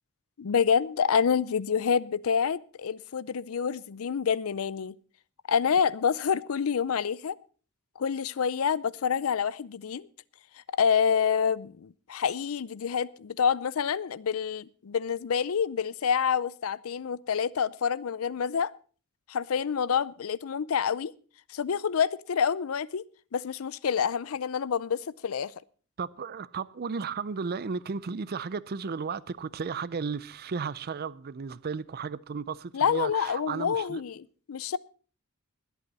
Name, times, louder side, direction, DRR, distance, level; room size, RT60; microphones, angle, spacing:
voice 1, 0.4-5.0 5.5-7.4 8.0-10.1 10.7-18.7 19.3-21.1 21.5-23.1 23.3-25.5 32.7-34.8, left 7 dB, 80° left, 0.5 m, -27 dB
voice 2, 26.0-34.0, right 5 dB, 50° right, 0.5 m, -34 dB
20.5 x 8.3 x 4.1 m
head